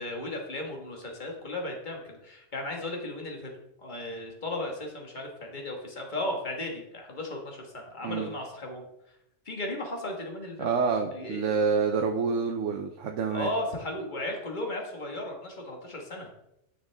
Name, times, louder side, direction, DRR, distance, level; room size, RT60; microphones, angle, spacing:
voice 1, 0.0-3.5 3.8-8.8 9.5-10.7 11.1-11.5 13.3-16.3, left 1 dB, 40° left, 1 dB, 1.7 m, -35 dB
voice 2, 10.6-13.5, right 5 dB, 80° right, 3 dB, 1.0 m, -27 dB
9.6 x 6.3 x 3.5 m, 0.83 s
omnidirectional pair, 1.3 m